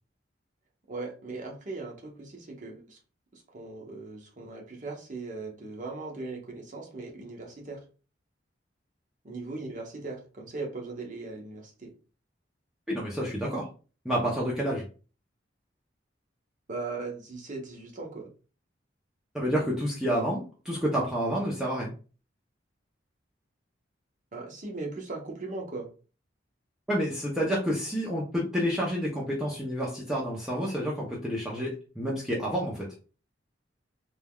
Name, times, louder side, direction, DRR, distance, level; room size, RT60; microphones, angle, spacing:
voice 1, 0.9-3.0 3.3-7.8 9.2-11.9 16.7-18.3 24.3-25.9, right 3 dB, 45° right, 0 dB, 0.8 m, -39 dB
voice 2, 12.9-13.7 14.0-14.9 19.3-21.9 26.9-32.9, equal, 5° right, -5 dB, 0.5 m, -29 dB
3.3 x 2.2 x 2.2 m, 0.36 s
head